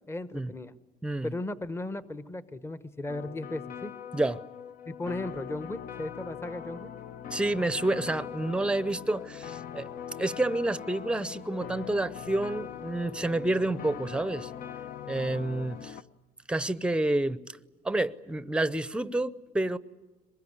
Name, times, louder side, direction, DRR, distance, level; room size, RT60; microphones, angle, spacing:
voice 1, 0.1-0.7 1.2-3.9 4.9-6.9, left 2 dB, 15° left, 0.9 m, -36 dB
voice 2, 1.0-1.3 4.1-4.4 7.3-9.9 10.2-14.5 15.1-16.0 16.5-17.4 17.8-19.8, right 2 dB, 5° right, 0.7 m, -29 dB
sound 1, 3.1-16.0, left 9 dB, 55° left, 0.9 m, -41 dB
23.5 x 21.0 x 9.6 m
cardioid pair, 110°, 17 cm